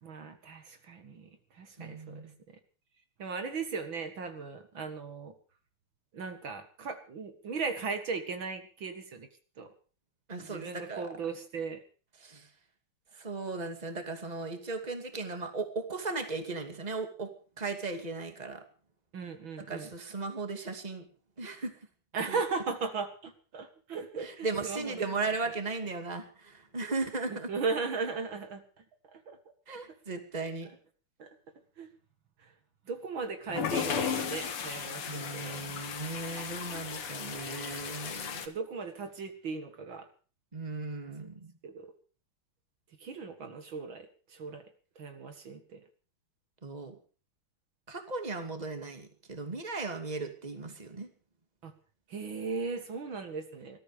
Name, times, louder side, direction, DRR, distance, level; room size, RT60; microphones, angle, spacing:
voice 1, 0.0-2.2 3.2-5.3 6.1-9.3 9.6-9.7 10.4-11.8 19.1-19.9 22.1-25.2 27.3-28.6 29.1-29.4 31.2-31.3 31.8-31.9 32.4-32.5 32.9-35.6 38.5-40.1 41.6-41.9 43.0-44.6 45.0-45.8 51.6-51.7 52.1-53.8, right 4 dB, 65° right, 7 dB, 2.6 m, -37 dB
voice 2, 1.8-2.3 10.3-11.1 12.2-12.5 13.1-17.3 17.6-18.6 19.7-21.0 21.4-21.7 22.3-22.4 24.2-27.5 29.7-30.7 35.1-38.4 40.5-41.5 46.6-46.9 47.9-51.1, right 3 dB, 20° right, 6 dB, 2.5 m, -37 dB
sound 1, 33.5-38.5, left 7 dB, 90° left, 2.6 m, -35 dB
20.0 x 14.0 x 5.0 m, 0.39 s
omnidirectional pair, 2.4 m